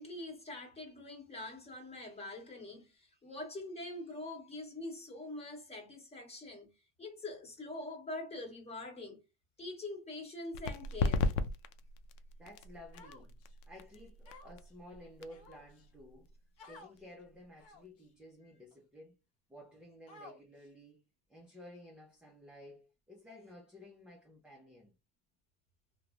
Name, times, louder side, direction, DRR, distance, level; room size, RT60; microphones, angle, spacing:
voice 1, 0.0-6.7 7.0-9.2 9.6-11.3, left 2 dB, 15° left, 1.0 m, -44 dB
sound 1, 10.5-17.9, left 4 dB, 90° left, 0.5 m, -38 dB
voice 2, 12.4-13.4 13.7-16.3 16.7-19.2 19.5-21.0 21.3-24.9, left 1 dB, 5° right, 0.4 m, -54 dB
Human voice, 12.9-13.5 14.2-14.7 15.3-15.9 16.6-16.9 17.6-18.0 18.7-18.8 20.1-20.7, left 3 dB, 40° left, 0.8 m, -54 dB
2.9 x 2.1 x 2.4 m
supercardioid pair, 130°, 38 cm